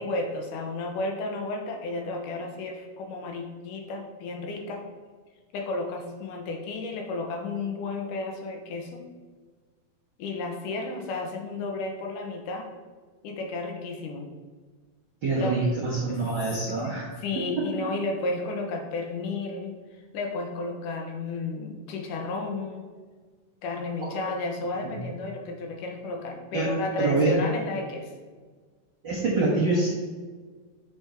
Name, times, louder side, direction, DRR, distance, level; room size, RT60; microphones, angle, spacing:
voice 1, 0.0-4.8 5.5-9.0 10.2-12.7 13.2-14.3 15.4-16.2 16.7-16.9 17.2-22.9 23.6-28.1, left 3 dB, 80° left, 2 dB, 2.4 m, -33 dB
voice 2, 15.2-17.1 17.8-17.9 24.0-24.1 24.8-25.0 26.5-27.4 29.0-29.9, right 2 dB, 60° right, -6 dB, 1.2 m, -25 dB
8.1 x 4.8 x 4.4 m, 1.5 s
omnidirectional pair, 3.9 m